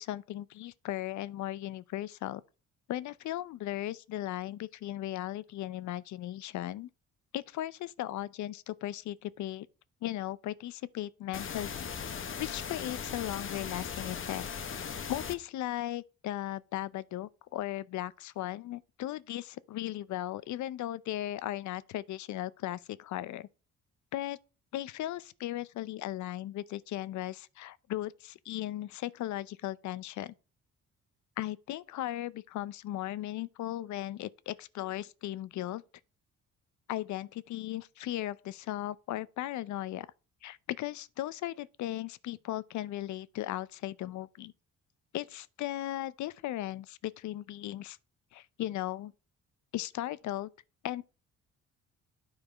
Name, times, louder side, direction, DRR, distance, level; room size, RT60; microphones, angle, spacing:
voice 1, 0.0-2.4 2.9-6.9 7.3-9.7 10.0-11.9 12.4-14.5 15.1-23.5 24.1-24.4 24.7-30.3 31.4-35.8 36.9-40.1 40.4-44.5 45.1-48.0 48.3-49.1 49.7-50.5 50.8-51.0, left 14 dB, 70° left, 0.6 m, -37 dB
sound 1, 11.3-15.3, left 6 dB, 40° left, 1.0 m, -38 dB
9.7 x 4.8 x 4.9 m
cardioid pair, 90°, 30 cm